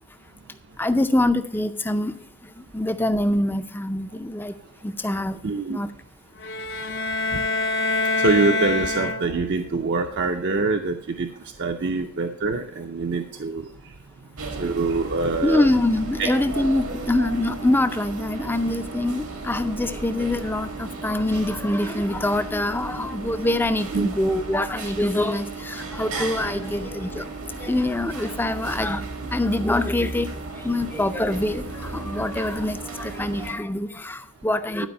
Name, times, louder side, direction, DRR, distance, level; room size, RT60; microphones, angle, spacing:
voice 1, 0.8-2.1 2.6-4.6 4.8-5.4 5.7-5.9 15.4-27.2 27.6-29.0 29.3-34.9, left 1 dB, 10° left, 10 dB, 0.4 m, -24 dB
voice 2, 5.4-5.8 7.3-7.4 8.2-11.3 11.6-13.9 14.6-15.7 16.2-16.3 23.9-24.1 34.8-34.9, right 3 dB, 50° right, 4 dB, 0.6 m, -24 dB
sound 1, 6.4-9.6, left 2 dB, 55° left, 0.6 m, -25 dB
sound 2, 14.4-33.5, right 3 dB, 85° right, 1.7 m, -35 dB
11.0 x 4.9 x 5.3 m, 0.67 s
head